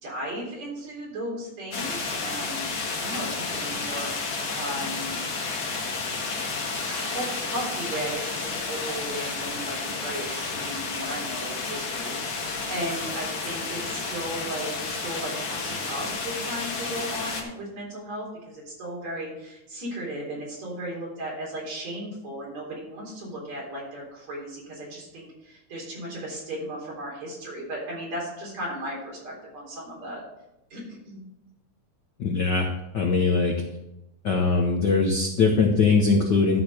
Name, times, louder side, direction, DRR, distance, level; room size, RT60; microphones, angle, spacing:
voice 1, 0.0-2.7 2.9-5.2 6.9-30.2 30.7-31.2, right 1 dB, 65° right, -4 dB, 5.0 m, -36 dB
sound 1, 1.7-17.4, left 4 dB, 60° left, 2.6 m, -31 dB
voice 2, 32.2-32.7 32.9-33.5 34.2-36.6, left 4 dB, 90° left, 2 dB, 0.9 m, -21 dB
12.0 x 4.5 x 6.4 m, 0.90 s
omnidirectional pair, 3.4 m